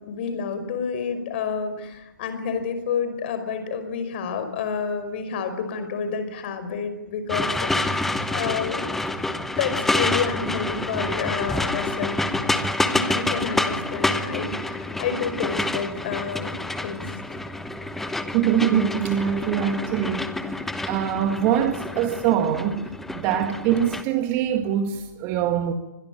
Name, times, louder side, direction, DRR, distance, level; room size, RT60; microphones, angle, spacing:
voice 1, 0.0-8.8 9.6-12.2 12.9-17.4, left 6 dB, 30° left, 5.2 m, -29 dB
sound 1, 7.3-24.0, left 2 dB, ahead, 1.0 m, -28 dB
voice 2, 18.3-20.3 20.9-25.7, right 9 dB, 20° right, 1.9 m, -23 dB
25.5 x 21.5 x 9.0 m
figure-of-eight pair, 135°, 11 cm